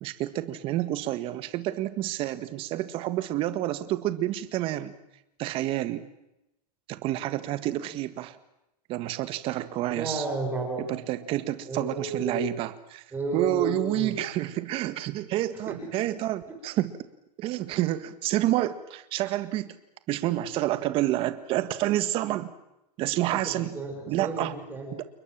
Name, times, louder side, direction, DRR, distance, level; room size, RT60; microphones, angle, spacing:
voice 1, 0.0-4.9 5.4-6.1 6.9-8.4 8.9-10.2 10.9-13.0 13.3-16.9 17.4-19.8 20.1-22.5 23.0-23.8 24.1-24.5 24.9-25.0, right 14 dB, 25° right, 12 dB, 1.7 m, -29 dB
voice 2, 9.9-10.8 11.7-12.4 13.1-14.1 15.7-16.1 23.2-24.9, right 3 dB, 10° right, 2 dB, 5.7 m, -33 dB
29.5 x 21.5 x 7.5 m, 0.88 s
hypercardioid pair, 155°, 20 cm